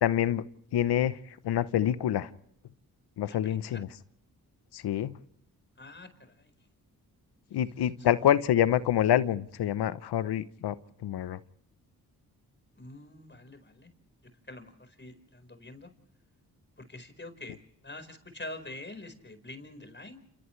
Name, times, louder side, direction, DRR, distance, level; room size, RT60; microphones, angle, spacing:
voice 1, 0.0-0.4 0.7-2.3 3.2-3.9 4.7-5.2 7.5-10.8 11.0-11.4, left 11 dB, 85° left, 15 dB, 0.9 m, -26 dB
voice 2, 3.2-3.8 5.8-6.5 8.1-8.2 12.8-13.9 14.2-15.9 16.8-20.2, left 2 dB, 30° left, 9 dB, 4.7 m, -46 dB
29.0 x 28.5 x 3.3 m, 0.72 s
supercardioid pair, 45°, 39 cm